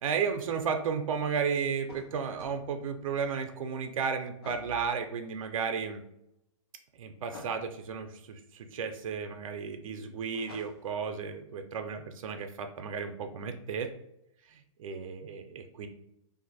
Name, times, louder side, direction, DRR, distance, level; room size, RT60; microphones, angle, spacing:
voice 1, 0.0-6.0 6.9-13.9 14.5-15.9, right 6 dB, 85° right, 6 dB, 0.4 m, -33 dB
sound 1, 1.8-2.6 4.4-4.8 7.3-7.6 10.3-11.0, left 3 dB, 50° left, 0.6 m, -48 dB
2.5 x 2.4 x 4.0 m, 0.80 s
hypercardioid pair, 175°, 17 cm